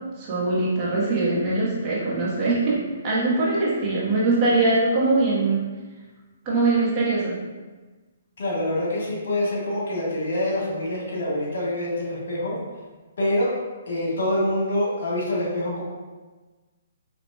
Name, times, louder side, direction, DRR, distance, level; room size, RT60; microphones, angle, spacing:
voice 1, 0.2-5.6 6.4-7.4, right 2 dB, 30° right, -7 dB, 1.1 m, -22 dB
voice 2, 8.4-12.6 13.2-13.5 13.9-15.8, left 1 dB, 70° left, -5 dB, 1.4 m, -25 dB
4.1 x 2.9 x 2.3 m, 1.3 s
hypercardioid pair, 140°, 0 cm